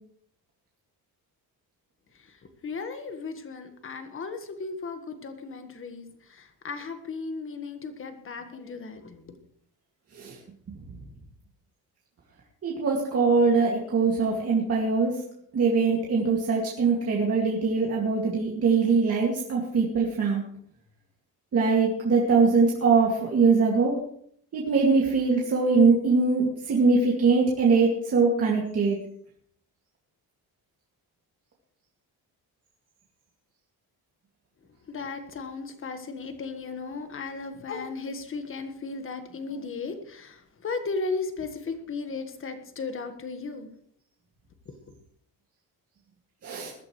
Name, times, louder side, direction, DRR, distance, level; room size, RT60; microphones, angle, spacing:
voice 1, 2.6-9.4 34.9-43.7 44.6-44.8, left 4 dB, 35° left, 8 dB, 1.6 m, -36 dB
voice 2, 12.6-15.1 15.5-20.4 21.5-23.9 24.5-29.0 46.4-46.7, right 4 dB, 40° right, -3 dB, 2.3 m, -22 dB
20.5 x 13.5 x 3.2 m, 0.65 s
cardioid pair, 175°, 38 cm